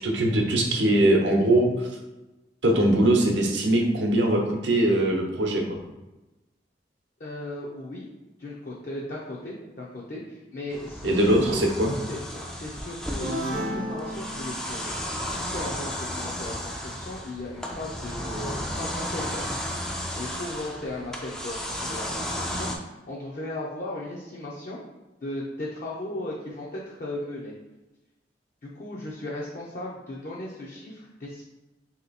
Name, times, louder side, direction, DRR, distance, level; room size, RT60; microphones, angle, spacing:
voice 1, 0.0-1.9 2.6-5.6 11.0-11.9, right 1 dB, 75° right, 1 dB, 0.8 m, -21 dB
voice 2, 7.2-8.1 8.4-11.7 12.1-19.5 19.8-24.8 25.2-27.5 28.6-31.4, left 1 dB, 50° left, -5 dB, 0.6 m, -37 dB
sound 1, 10.7-22.8, equal, 5° left, 0.4 m, -34 dB
sound 2, 13.2-15.0, equal, 45° right, 0.7 m, -33 dB
3.1 x 2.9 x 4.0 m, 1.0 s
head